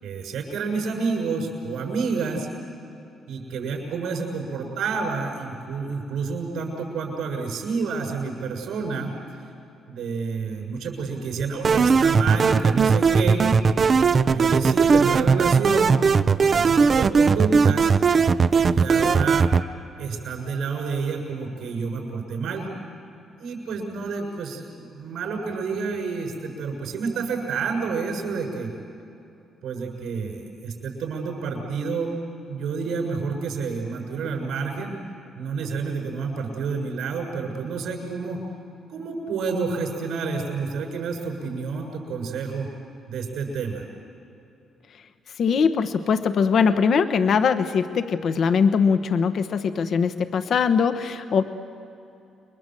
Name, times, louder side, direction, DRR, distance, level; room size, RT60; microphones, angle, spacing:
voice 1, 0.0-2.5 3.3-9.1 9.9-13.4 14.3-16.1 16.5-17.9 18.6-19.5 20.0-22.7 23.4-28.7 29.6-32.1 32.5-35.0 35.4-38.4 38.9-42.7 43.1-43.9, right 5 dB, 80° right, 1 dB, 6.9 m, -29 dB
sound 1, 11.6-19.6, right 5 dB, 45° right, 0.6 m, -18 dB
voice 2, 45.4-51.4, left 6 dB, 60° left, 9 dB, 1.0 m, -21 dB
28.5 x 22.5 x 7.8 m, 2.8 s
cardioid pair, 90°, 0 cm